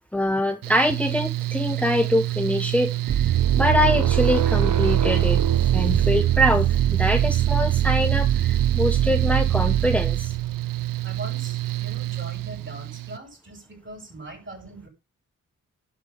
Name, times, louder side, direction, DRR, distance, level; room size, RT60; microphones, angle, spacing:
voice 1, 0.1-5.4 5.7-10.3, left 1 dB, 5° left, 1.0 m, -24 dB
Mechanical fan, 0.6-13.2, right 17 dB, 85° right, 0.5 m, -29 dB
sound 1, 3.1-10.5, right 11 dB, 65° right, 0.8 m, -22 dB
voice 2, 11.0-14.9, right 2 dB, 35° right, 6.6 m, -41 dB
11.5 x 4.7 x 5.4 m
cardioid pair, 50°, 32 cm